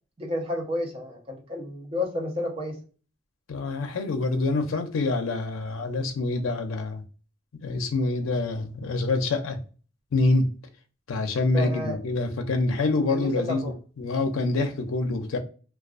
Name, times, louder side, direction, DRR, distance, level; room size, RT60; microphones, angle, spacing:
voice 1, 0.2-2.8 11.5-12.0 13.1-13.7, left 1 dB, 30° right, 0.7 m, -31 dB
voice 2, 3.5-7.0 7.6-9.6 10.1-10.5 11.1-15.4, left 3 dB, 90° left, 0.4 m, -26 dB
2.3 x 2.2 x 2.4 m
head